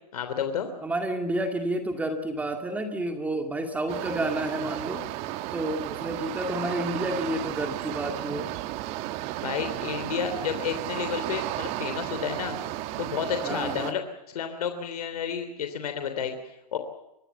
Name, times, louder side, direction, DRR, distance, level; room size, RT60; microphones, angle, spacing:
voice 1, 0.1-0.7 9.4-12.6 13.0-14.0 14.3-16.8, left 7 dB, 70° left, 7 dB, 3.2 m, -31 dB
voice 2, 0.8-5.0 5.5-8.5 13.4-14.0, right 1 dB, 5° right, 5 dB, 2.3 m, -30 dB
sound 1, 3.9-13.9, right 15 dB, 30° right, 1.3 m, -34 dB
25.0 x 20.0 x 7.0 m, 0.94 s
hypercardioid pair, 140°, 20 cm